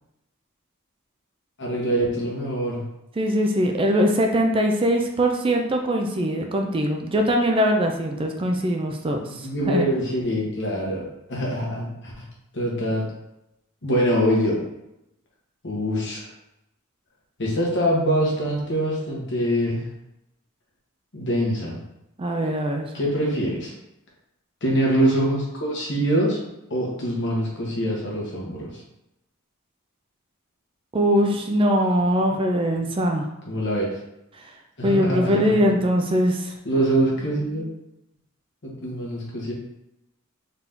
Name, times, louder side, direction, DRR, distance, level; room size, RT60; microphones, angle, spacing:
voice 1, 1.6-2.8 9.4-12.2 12.5-13.0 13.8-14.6 15.6-16.3 17.4-19.9 21.1-21.8 22.9-23.7 24.6-26.4 26.7-28.8 33.5-33.9 34.8-35.6 36.6-37.7 38.6-39.5, equal, 55° left, -3 dB, 1.3 m, -24 dB
voice 2, 3.2-9.9 22.2-22.9 30.9-33.3 34.8-36.5, equal, 25° right, 3 dB, 0.4 m, -22 dB
4.0 x 2.8 x 3.6 m, 0.87 s
head